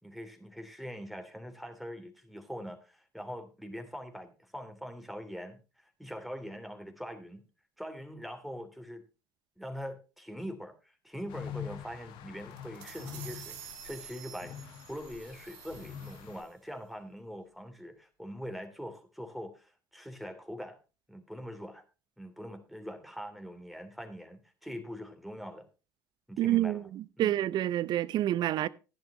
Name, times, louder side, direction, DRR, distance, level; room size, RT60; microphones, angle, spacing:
voice 1, 0.0-7.4 7.8-9.0 9.6-13.6 13.8-20.8 21.1-21.8 22.2-25.7 26.3-26.9 27.2-27.3, equal, ahead, 2.9 m, -43 dB
sound 1, 11.3-16.4, left 8 dB, 65° left, 1.5 m, -45 dB
sound 2, 12.5-16.5, right 9 dB, 70° right, 1.6 m, -49 dB
voice 2, 26.4-28.7, right 13 dB, 55° right, 0.6 m, -28 dB
15.5 x 10.5 x 3.0 m
hypercardioid pair, 60°, 9 cm